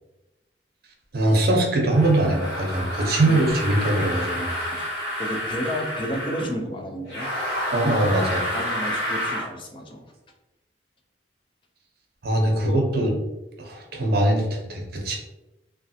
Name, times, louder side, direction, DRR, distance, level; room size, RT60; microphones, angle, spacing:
voice 1, 1.1-4.5 7.7-8.4 12.2-13.1 13.6-15.2, right 1 dB, 60° right, 1 dB, 0.6 m, -22 dB
sound 1, 1.9-6.5 7.1-9.5, equal, 70° left, 1.2 m, -29 dB
voice 2, 5.2-7.3 8.5-10.1 12.7-12.8, equal, 30° left, 3 dB, 0.4 m, -31 dB
3.1 x 2.4 x 2.7 m, 1.0 s
head